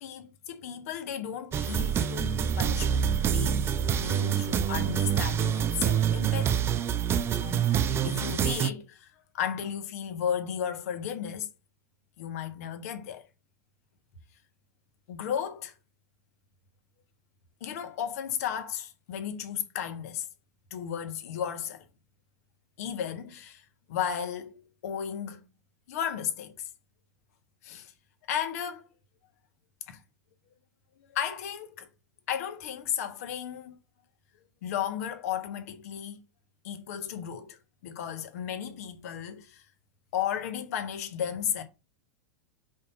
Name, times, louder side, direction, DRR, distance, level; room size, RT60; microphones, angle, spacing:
voice 1, 0.0-3.6 3.9-6.6 7.3-11.5 12.2-13.3 15.1-15.7 17.6-20.3 20.7-21.9 22.8-24.5 24.8-25.4 25.9-26.7 27.6-27.9 28.3-28.9 29.9-30.0 31.0-31.9 32.3-33.8 34.6-36.2 36.6-39.6 40.1-41.6, left 9 dB, 60° left, 1.4 m, -34 dB
sound 1, 1.5-8.7, right 9 dB, 25° right, 0.6 m, -26 dB
5.2 x 4.2 x 5.6 m
figure-of-eight pair, 90°, 9 cm